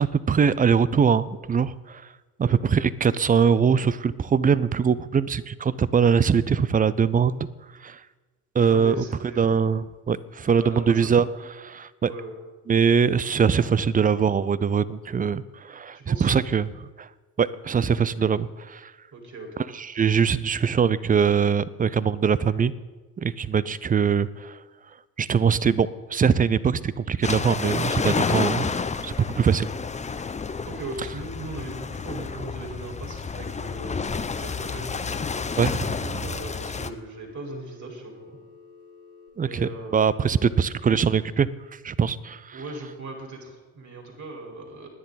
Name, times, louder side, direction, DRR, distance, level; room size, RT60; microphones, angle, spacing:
voice 1, 0.0-2.0 2.4-7.5 7.8-8.0 8.5-9.0 9.4-11.3 11.6-12.1 12.7-17.1 17.4-18.9 19.7-22.7 23.2-24.6 25.2-28.7 29.0-29.7 35.6-36.2 39.4-42.6, right 6 dB, 20° right, 18 dB, 0.5 m, -22 dB
voice 2, 8.7-9.6 10.6-11.2 12.0-12.3 15.9-16.3 19.1-19.6 30.6-34.0 34.4-34.9 36.2-38.4 39.3-40.4 42.5-44.9, right 2 dB, 35° right, 1 dB, 4.6 m, -38 dB
sound 1, 27.2-36.9, left 5 dB, 15° left, 0.7 m, -30 dB
Telephone, 34.3-39.3, left 5 dB, 85° left, 3.5 m, -50 dB
27.5 x 10.0 x 4.1 m, 1.3 s
figure-of-eight pair, 55°, 47 cm